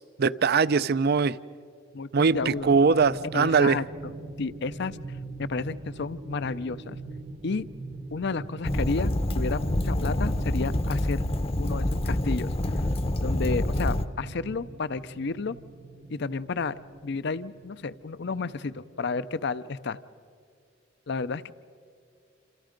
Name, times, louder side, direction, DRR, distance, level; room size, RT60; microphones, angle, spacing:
voice 1, 0.0-1.4 2.1-3.8, right 5 dB, 55° right, 0.5 m, -22 dB
voice 2, 1.9-2.7 3.3-4.1 4.4-5.0 5.4-7.0 7.4-7.7 8.1-11.2 11.6-12.5 13.2-15.6 16.1-16.7 17.0-20.0 21.1-21.5, left 4 dB, 60° left, 0.6 m, -31 dB
sound 1, 2.3-19.5, right 2 dB, 40° right, 0.9 m, -43 dB
Fire, 8.6-14.1, left 1 dB, 30° left, 0.8 m, -27 dB
28.0 x 27.0 x 5.2 m
head